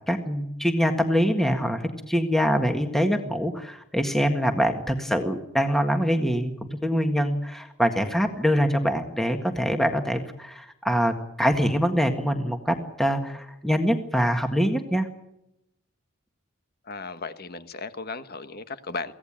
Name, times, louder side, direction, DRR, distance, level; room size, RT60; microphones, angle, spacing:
voice 1, 0.1-15.1, equal, ahead, 1.7 m, -24 dB
voice 2, 16.9-19.1, left 3 dB, 45° left, 1.4 m, -35 dB
24.5 x 17.0 x 8.9 m
head